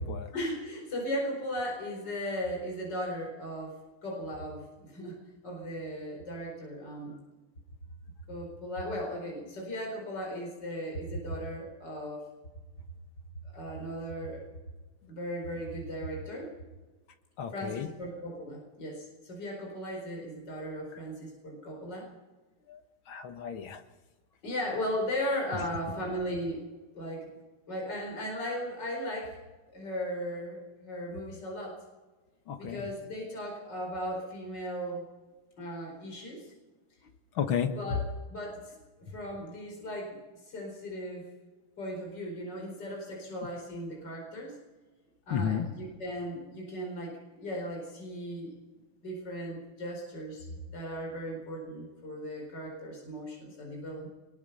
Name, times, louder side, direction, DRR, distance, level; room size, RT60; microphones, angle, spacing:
voice 1, 0.0-7.2 8.3-12.2 13.4-14.4 15.1-16.5 17.5-22.1 24.4-26.7 26.9-27.3 27.7-29.4 29.7-31.8 32.6-35.0 35.6-36.5 37.7-38.0 38.3-40.2 40.4-41.3 41.8-44.6 45.3-47.1 47.4-48.6 49.0-50.5 50.7-54.1, equal, 50° left, -1 dB, 5.3 m, -37 dB
voice 2, 17.4-17.9 22.7-22.8 23.1-23.8 25.6-25.7 32.5-32.9 37.4-37.7 45.3-45.7, left 8 dB, 70° left, 7 dB, 2.2 m, -32 dB
21.5 x 21.5 x 5.6 m, 1.3 s
omnidirectional pair, 2.4 m